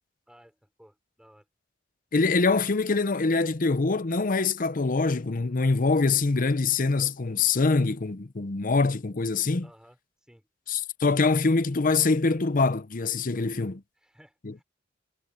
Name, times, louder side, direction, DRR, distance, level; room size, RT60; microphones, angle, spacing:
voice 1, 0.3-1.5 9.6-10.5 14.0-14.6, equal, 5° right, 5.5 m, -57 dB
voice 2, 2.1-9.7 10.7-13.8 14.4-14.5, left 3 dB, 45° left, 0.7 m, -24 dB
head